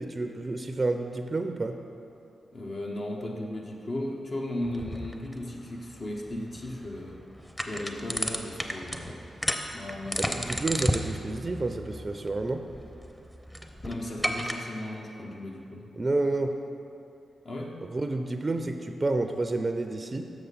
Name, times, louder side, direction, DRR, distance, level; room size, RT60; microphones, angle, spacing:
voice 1, 0.0-1.8 10.2-12.7 16.0-16.6 17.8-20.3, right 2 dB, 40° right, 6 dB, 0.4 m, -30 dB
voice 2, 2.5-7.2 7.6-9.2 9.7-11.1 13.8-15.9 17.4-17.8, left 1 dB, 50° left, -1 dB, 0.8 m, -36 dB
sound 1, 4.6-14.5, equal, 5° left, 0.6 m, -34 dB
6.8 x 6.2 x 4.0 m, 2.7 s
supercardioid pair, 40°, 0 cm